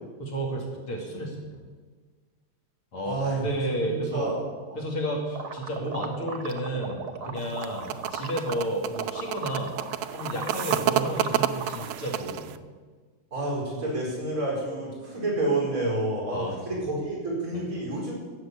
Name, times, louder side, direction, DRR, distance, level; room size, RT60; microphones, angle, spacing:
voice 1, 0.2-1.6 2.9-3.2 3.4-4.3 4.8-9.7 10.1-12.5 16.3-16.6 17.5-17.6, right 1 dB, 70° left, -1 dB, 3.4 m, -31 dB
voice 2, 3.0-3.5 3.7-4.4 13.3-18.1, right 2 dB, 35° right, -4 dB, 5.5 m, -29 dB
sound 1, 5.3-8.7 8.9-11.9, right 5 dB, 55° right, 1.3 m, -37 dB
sound 2, 7.4-12.6, right 11 dB, 75° right, 1.5 m, -29 dB
13.5 x 7.9 x 8.7 m, 1.4 s
omnidirectional pair, 2.4 m